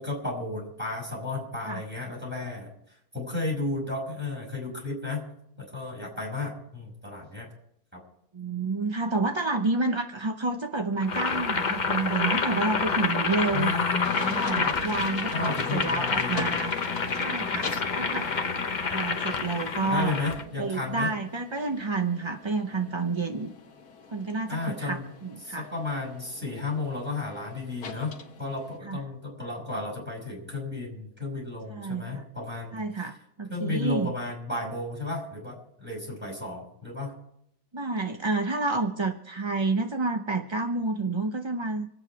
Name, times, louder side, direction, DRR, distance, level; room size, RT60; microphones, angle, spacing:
voice 1, 0.0-2.7 3.1-5.2 5.6-7.5 7.9-8.0 13.5-14.7 15.3-16.6 19.9-21.1 24.5-25.1 25.4-28.1 28.4-33.0 33.5-37.1, left 3 dB, 5° right, -1 dB, 5.8 m, -33 dB
voice 2, 8.3-13.7 14.2-16.8 17.1-18.3 18.9-20.2 20.6-23.5 24.1-25.7 28.8-29.0 31.7-32.2 32.7-34.1 37.7-41.9, right 3 dB, 30° right, 5 dB, 0.5 m, -29 dB
Boiling, 11.0-20.4, left 4 dB, 35° left, 0.9 m, -28 dB
sound 1, 14.0-28.8, left 5 dB, 75° left, 1.8 m, -42 dB
26.5 x 8.9 x 4.7 m, 0.75 s
omnidirectional pair, 1.7 m